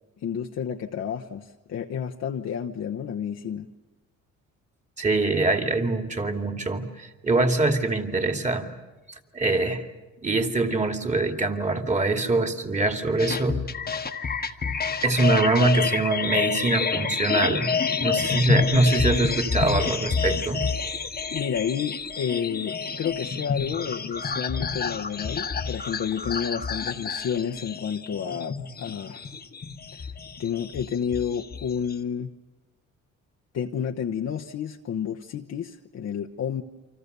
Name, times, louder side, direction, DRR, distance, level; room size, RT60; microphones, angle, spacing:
voice 1, 0.2-3.7 21.3-29.3 29.9-30.1 30.4-32.3 33.5-36.6, left 8 dB, 60° left, 1 dB, 1.0 m, -30 dB
voice 2, 5.0-8.7 9.3-9.8 10.2-13.6 14.4-14.5 15.0-17.7 18.0-20.6, right 2 dB, 25° right, 5 dB, 2.6 m, -24 dB
sound 1, 13.2-31.9, left 5 dB, 30° left, 1.3 m, -29 dB
29.0 x 25.0 x 6.8 m, 1.1 s
cardioid pair, 90°, 30 cm